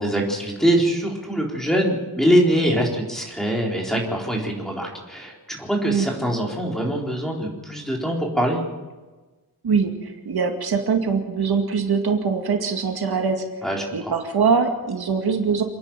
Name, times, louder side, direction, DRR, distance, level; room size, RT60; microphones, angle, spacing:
voice 1, 0.0-8.6 13.6-14.1, equal, ahead, -1 dB, 4.1 m, -23 dB
voice 2, 9.6-13.4 13.9-15.6, right 5 dB, 75° right, 4 dB, 2.2 m, -22 dB
28.0 x 10.5 x 9.1 m, 1.2 s
wide cardioid pair, 170°, 38 cm